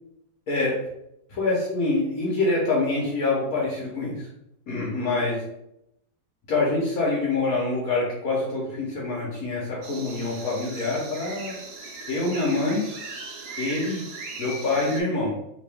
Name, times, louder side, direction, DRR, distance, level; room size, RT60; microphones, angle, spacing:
voice 1, 0.5-0.8 1.3-4.3 4.7-5.4 6.5-11.5 12.1-12.8 13.6-14.0 14.4-15.3, left 3 dB, 65° left, -3 dB, 1.2 m, -25 dB
sound 1, 9.8-15.0, right 3 dB, 90° right, 1.3 m, -38 dB
3.0 x 2.9 x 3.3 m, 0.81 s
omnidirectional pair, 1.7 m